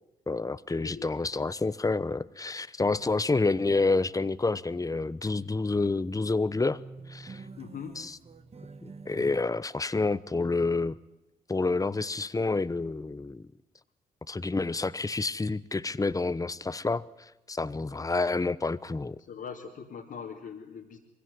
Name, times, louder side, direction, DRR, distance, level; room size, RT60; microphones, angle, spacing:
voice 1, 0.3-6.8 7.1-7.4 8.0-8.2 8.8-11.0 11.5-13.5 14.3-19.2, left 3 dB, 20° left, 1.0 m, -28 dB
voice 2, 0.8-1.1 7.6-8.0 19.3-21.0, left 6 dB, 70° left, 2.9 m, -41 dB
sound 1, 3.0-3.3 3.9-4.0 5.3-6.1 6.3-6.4 6.6-9.4, right 4 dB, 35° right, 1.8 m, -47 dB
23.5 x 16.5 x 9.6 m
hypercardioid pair, 45°, 17 cm